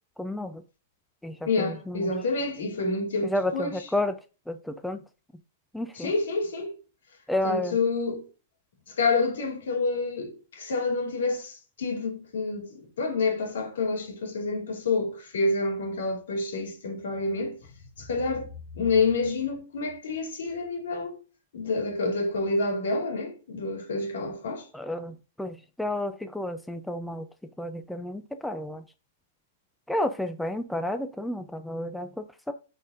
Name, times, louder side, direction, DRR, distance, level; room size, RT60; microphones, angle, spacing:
voice 1, 0.2-0.6 1.2-2.1 3.2-4.1 4.5-5.0 5.7-6.1 7.3-7.8 24.7-27.3 27.6-28.8 29.9-32.5, left 1 dB, ahead, 0.4 m, -31 dB
voice 2, 1.4-3.8 5.9-6.8 7.4-8.2 8.9-17.6 18.0-18.5 18.7-21.2 21.5-24.7, left 3 dB, 85° left, 2.6 m, -28 dB
12.5 x 4.2 x 2.5 m
hypercardioid pair, 165°, 0 cm